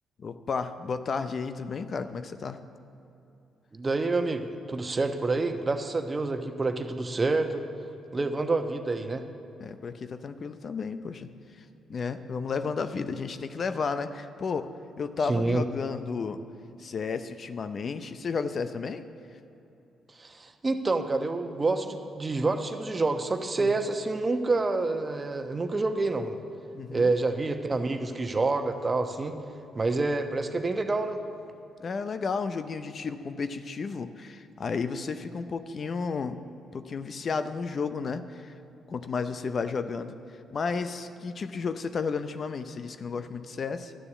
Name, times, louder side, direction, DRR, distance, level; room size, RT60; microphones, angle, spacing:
voice 1, 0.2-2.6 9.6-14.7 15.0-16.4 16.8-19.0 23.6-23.8 26.7-27.1 31.8-36.4 36.7-38.5 38.9-43.9, left 5 dB, 50° left, 10 dB, 0.6 m, -33 dB
voice 2, 3.7-7.6 8.1-9.2 15.3-15.6 20.2-26.4 26.9-29.3 29.7-31.2, right 3 dB, 35° right, 7 dB, 1.1 m, -28 dB
12.5 x 6.9 x 8.2 m, 2.9 s
supercardioid pair, 55°, 0 cm